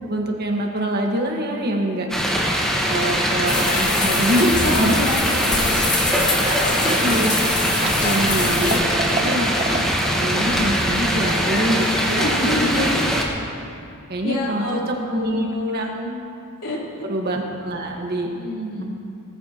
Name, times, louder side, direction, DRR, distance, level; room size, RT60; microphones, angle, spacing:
voice 1, 0.0-2.1 2.9-5.0 6.1-7.3 7.8-8.8 9.2-9.8 10.1-12.9 14.1-15.5 15.7-15.9 17.1-18.3, right 1 dB, 50° right, 1 dB, 1.6 m, -25 dB
sound 1, 2.1-13.2, equal, 5° left, 1.5 m, -22 dB
sound 2, 3.5-8.8, left 3 dB, 35° left, 2.0 m, -25 dB
voice 2, 4.6-6.0 9.2-9.3 12.2-13.1 14.2-16.1 16.6-17.1 18.3-18.8, left 1 dB, 80° left, -5 dB, 3.7 m, -28 dB
Liquid, 6.6-6.7 6.9-10.1 10.5-10.6, right 4 dB, 30° right, 0.5 m, -31 dB
19.0 x 14.0 x 3.0 m, 2.4 s
head